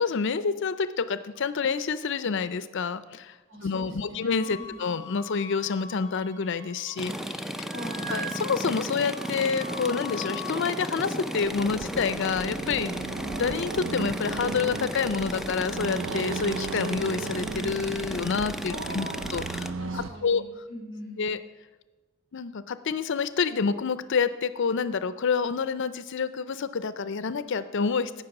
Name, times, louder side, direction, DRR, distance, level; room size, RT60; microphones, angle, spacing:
voice 1, 0.0-3.3 3.6-7.4 8.1-19.1 19.3-19.7 20.2-20.4 21.2-21.4 22.3-28.2, left 5 dB, 60° left, 14 dB, 0.5 m, -28 dB
voice 2, 3.5-4.8 7.7-8.2 18.7-19.3 19.8-21.3, equal, 65° right, -1 dB, 3.8 m, -41 dB
Wind instrument woodwind instrument, 4.4-7.3 7.5-10.6, left 1 dB, 50° right, 2.5 m, -42 dB
sound 1, 7.0-19.7, equal, ahead, 0.4 m, -34 dB
Accelerating revving vroom, 11.4-20.2, right 4 dB, 80° right, 0.5 m, -36 dB
16.5 x 6.0 x 6.0 m, 1.2 s
head